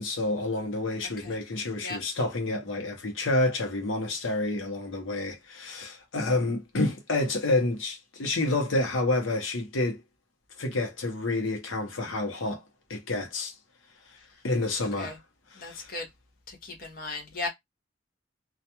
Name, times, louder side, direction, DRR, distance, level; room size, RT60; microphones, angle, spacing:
voice 1, 0.0-10.0 10.6-12.6 12.9-13.5 14.4-15.1 15.6-15.9, left 2 dB, 80° left, 0.8 m, -29 dB
voice 2, 15.6-16.1 16.5-17.5, left 3 dB, 50° left, 0.8 m, -36 dB
2.4 x 2.2 x 2.8 m
head